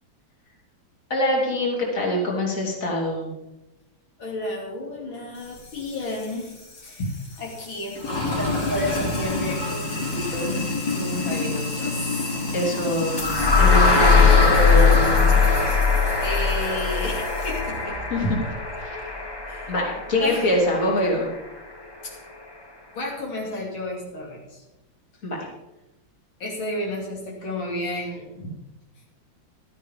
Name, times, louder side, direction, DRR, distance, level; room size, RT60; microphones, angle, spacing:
voice 1, 1.1-3.3 12.5-15.8 18.1-18.4 18.8-19.0 19.7-21.3 25.2-25.4, left 1 dB, 40° left, -3 dB, 3.4 m, -24 dB
voice 2, 4.2-6.5 6.8-7.1 7.4-8.0 8.4-10.6 10.9-12.4 16.2-18.0 19.5-19.7 20.2-20.6 22.0-22.2 22.9-24.6 26.4-28.5, left 1 dB, 85° left, -2 dB, 3.7 m, -32 dB
Sink (filling or washing), 5.4-17.7, left 2 dB, 65° left, 3.8 m, -30 dB
sound 1, 13.2-21.1, left 4 dB, 15° left, 1.1 m, -20 dB
16.0 x 13.0 x 3.7 m, 0.98 s
omnidirectional pair, 2.1 m